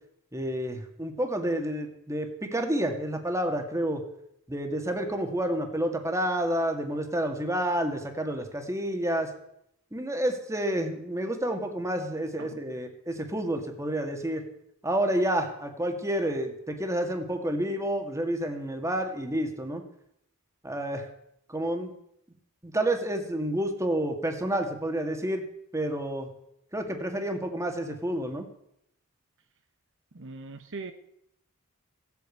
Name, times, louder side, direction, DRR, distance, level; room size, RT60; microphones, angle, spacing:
voice 1, 0.3-4.0 4.5-9.3 9.9-14.4 14.8-19.8 20.6-21.1 21.5-21.9 22.6-25.4 25.7-26.3 26.7-28.5, right 1 dB, 15° right, 4 dB, 2.0 m, -29 dB
voice 2, 30.1-30.9, right 3 dB, 60° right, 7 dB, 1.1 m, -40 dB
16.5 x 8.5 x 8.4 m, 0.77 s
head